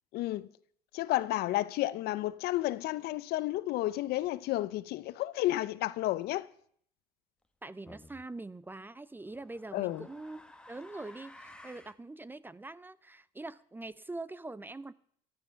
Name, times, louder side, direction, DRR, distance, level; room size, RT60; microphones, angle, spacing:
voice 1, 0.1-0.5 0.9-6.5 9.7-10.0, left 16 dB, 70° left, 0.6 m, -31 dB
voice 2, 7.6-10.4 10.7-14.9, right 2 dB, 10° right, 0.5 m, -43 dB
sound 1, 7.9-8.2 9.2-12.0, left 1 dB, 5° left, 1.3 m, -53 dB
15.0 x 11.5 x 5.8 m
cardioid pair, 100°, 17 cm